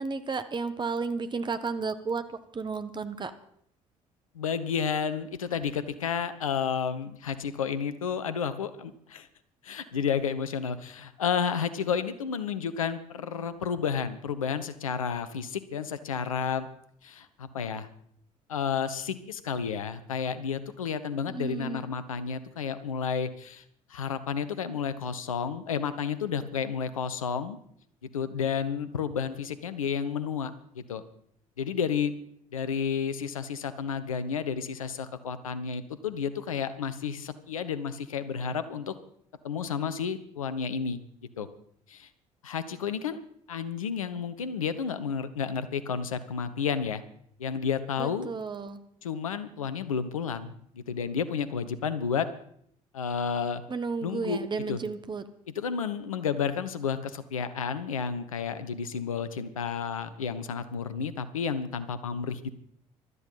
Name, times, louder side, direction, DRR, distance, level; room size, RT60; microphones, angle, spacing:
voice 1, 0.0-2.2 2.5-3.3 21.3-21.9 48.0-48.8 53.7-55.2, right 4 dB, 25° right, 10 dB, 1.4 m, -32 dB
voice 2, 4.3-9.3 9.6-16.7 17.0-17.9 18.5-23.6 23.9-27.6 28.1-31.0 31.6-32.1 32.5-39.0 39.4-41.0 41.4-41.5 41.9-42.1 42.4-43.2 43.5-47.0 47.4-48.3 49.0-52.3 52.9-53.6 54.0-54.8 55.5-62.5, left 6 dB, 80° left, 12 dB, 0.9 m, -31 dB
16.5 x 12.5 x 5.6 m, 0.67 s
figure-of-eight pair, 50°, 17 cm